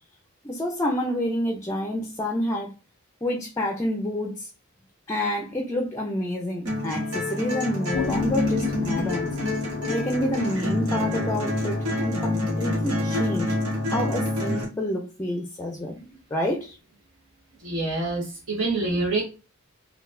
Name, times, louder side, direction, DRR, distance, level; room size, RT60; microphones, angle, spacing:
voice 1, 0.4-2.7 3.2-4.5 5.1-9.3 9.9-13.5 13.9-16.8, left 1 dB, 15° left, 2 dB, 0.4 m, -28 dB
sound 1, 6.7-14.6, left 1 dB, 90° right, 1.3 m, -27 dB
sound 2, 7.9-14.4, left 7 dB, 80° left, 0.4 m, -35 dB
voice 2, 17.6-19.2, right 2 dB, 75° right, -4 dB, 1.0 m, -26 dB
3.9 x 2.3 x 2.6 m, 0.32 s
head